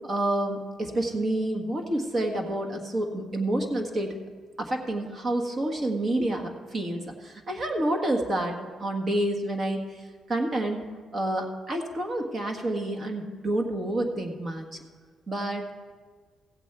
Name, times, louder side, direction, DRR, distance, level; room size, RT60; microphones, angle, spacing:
voice 1, 0.0-4.2 4.6-10.8 11.1-14.7 15.3-15.7, right 1 dB, 40° right, 3 dB, 1.6 m, -29 dB
15.5 x 8.2 x 4.6 m, 1.5 s
cardioid pair, 90°, 0 cm